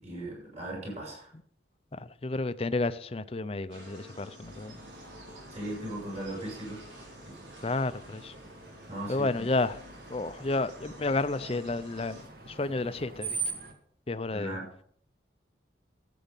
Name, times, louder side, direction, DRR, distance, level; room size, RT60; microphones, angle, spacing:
voice 1, 0.0-1.3 5.5-6.8 7.3-7.4 8.9-9.5 14.3-14.8, right 1 dB, 35° right, 6.0 m, -38 dB
voice 2, 1.9-4.8 7.6-8.3 9.1-9.8 10.1-13.4 14.1-14.5, left 2 dB, 30° left, 0.5 m, -31 dB
sound 1, 3.7-12.2, equal, 80° right, 5.7 m, -50 dB
Screech, 4.4-13.7, right 4 dB, 55° right, 1.8 m, -43 dB
13.0 x 8.5 x 5.3 m
head